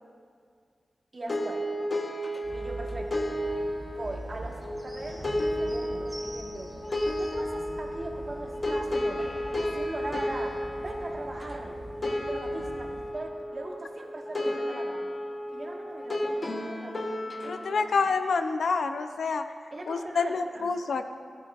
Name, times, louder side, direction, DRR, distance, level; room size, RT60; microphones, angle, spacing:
voice 1, 1.1-1.7 2.5-3.2 3.9-6.7 7.2-9.3 9.6-11.7 12.1-15.1 15.5-18.1 19.7-20.7, right 2 dB, 40° right, 0 dB, 1.5 m, -40 dB
sound 1, 1.3-17.7, left 1 dB, 35° left, 1.0 m, -33 dB
sound 2, 2.4-13.1, right 1 dB, 20° right, 3.0 m, -43 dB
voice 2, 17.5-19.4 19.9-21.0, left 4 dB, 85° left, 8 dB, 0.6 m, -27 dB
15.0 x 14.5 x 2.4 m, 2.2 s
wide cardioid pair, 115°, 0 cm